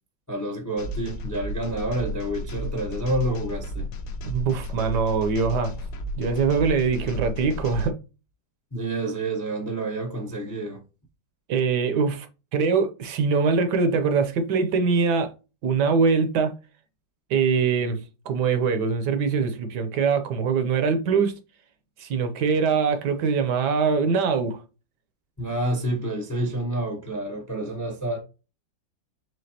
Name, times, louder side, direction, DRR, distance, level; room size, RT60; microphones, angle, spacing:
voice 1, 0.3-3.9 8.7-10.8 25.4-28.2, right 1 dB, 25° left, 0.4 m, -28 dB
sound 1, 0.8-7.9, left 1 dB, 70° left, 1.2 m, -33 dB
voice 2, 4.2-5.8 6.2-8.0 11.5-12.3 12.5-15.3 15.6-16.5 17.3-21.3 22.0-24.6, right 5 dB, 70° right, 1.2 m, -23 dB
5.1 x 3.5 x 2.8 m
omnidirectional pair, 2.0 m